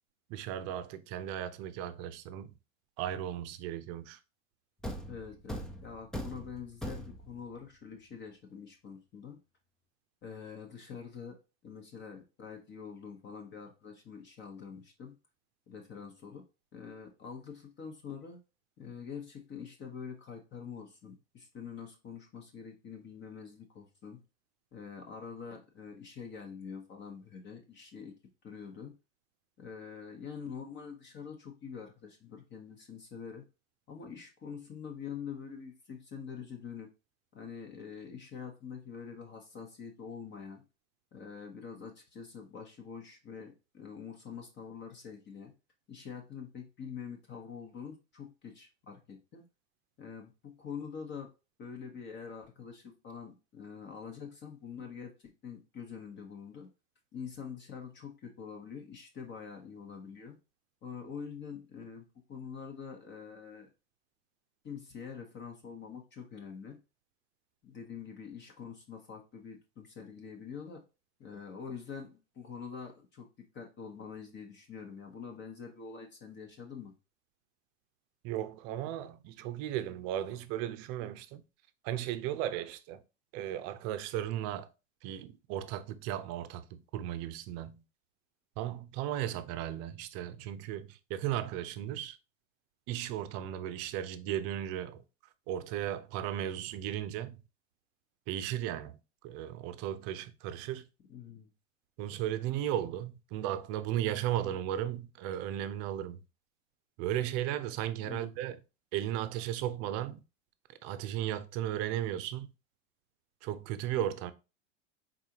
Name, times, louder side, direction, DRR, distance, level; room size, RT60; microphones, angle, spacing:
voice 1, 0.3-2.6 3.0-4.2 78.2-81.4 81.8-83.0 83.3-84.7 85.0-87.8 88.6-92.2 92.9-95.0 95.5-97.4 98.3-99.0 99.2-100.9 102.0-106.2 107.0-108.6 108.9-110.2 110.8-112.5 113.4-114.3, right 11 dB, 40° right, 0.6 m, -35 dB
Thump thud, 4.8-7.5, equal, ahead, 0.3 m, -41 dB
voice 2, 5.1-9.4 10.2-11.4 11.6-15.1 15.7-16.4 16.7-18.4 18.8-24.2 24.7-28.1 28.4-28.9 29.6-33.4 33.9-36.9 37.3-40.6 41.1-45.5 45.9-49.4 50.0-51.3 51.6-56.7 57.1-60.4 60.8-63.7 64.6-66.8 67.6-70.8 71.2-76.9 101.1-101.5 108.0-108.4, left 6 dB, 30° left, 1.0 m, -45 dB
4.7 x 3.9 x 2.8 m
hypercardioid pair, 105°, 38 cm